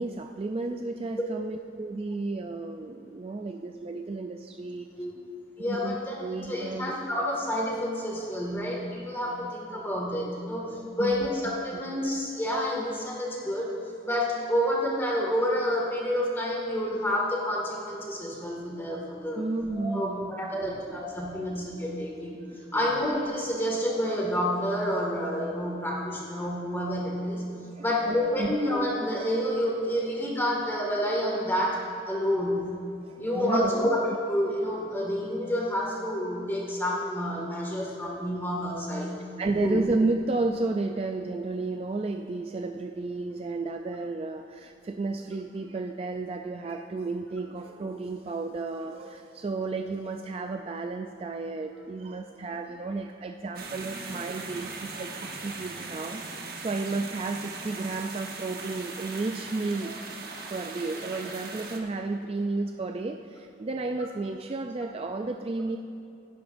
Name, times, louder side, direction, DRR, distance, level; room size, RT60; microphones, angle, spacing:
voice 1, 0.0-4.9 5.7-6.9 11.0-12.0 19.4-21.0 22.7-23.0 27.8-28.5 33.0-33.7 39.4-65.8, right 3 dB, 30° right, 5 dB, 0.3 m, -32 dB
voice 2, 5.6-10.7 11.0-13.7 14.0-19.4 19.7-22.4 22.7-27.5 27.8-31.8 32.1-32.8 33.2-39.1 39.6-39.8, equal, 10° left, -3 dB, 1.9 m, -29 dB
sound 1, 53.5-61.8, right 3 dB, 50° right, 1.1 m, -39 dB
17.0 x 10.5 x 2.6 m, 2.7 s
head